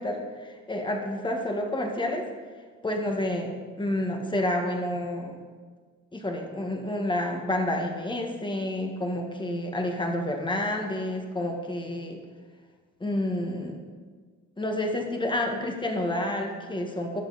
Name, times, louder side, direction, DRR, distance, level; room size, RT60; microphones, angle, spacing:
voice 1, 0.0-2.3 2.8-3.5 3.8-5.4 6.1-12.2 13.0-13.8 14.6-17.2, left 1 dB, 15° left, 2 dB, 1.8 m, -29 dB
18.5 x 6.5 x 4.2 m, 1.5 s
cardioid pair, 90°, 30 cm